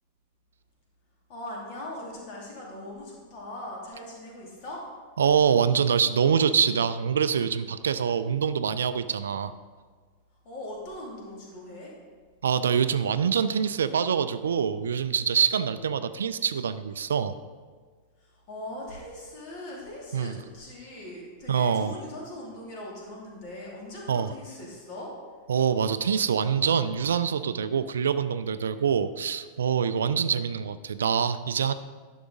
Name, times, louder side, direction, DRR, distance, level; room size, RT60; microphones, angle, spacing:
voice 1, 1.3-4.8 10.4-11.9 18.2-25.1, left 1 dB, 45° left, -3 dB, 2.7 m, -40 dB
voice 2, 5.2-9.5 12.4-17.3 20.1-20.4 21.5-21.9 24.1-24.3 25.5-31.7, right 7 dB, 65° right, 13 dB, 0.3 m, -25 dB
11.0 x 6.1 x 3.8 m, 1.5 s
figure-of-eight pair, 90°, 0 cm